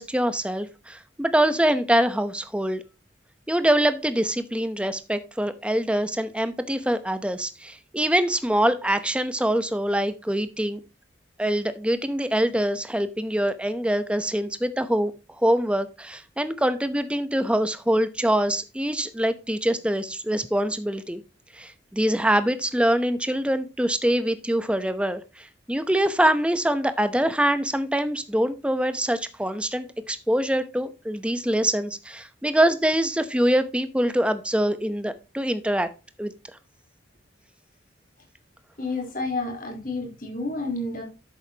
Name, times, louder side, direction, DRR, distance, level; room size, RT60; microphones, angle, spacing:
voice 1, 0.0-2.8 3.5-10.8 11.4-15.1 15.4-21.2 21.5-35.9 36.2-36.3, right 1 dB, 5° right, 11 dB, 0.8 m, -24 dB
voice 2, 38.8-41.0, left 2 dB, 50° left, 0 dB, 3.8 m, -30 dB
11.0 x 8.0 x 2.9 m, 0.29 s
head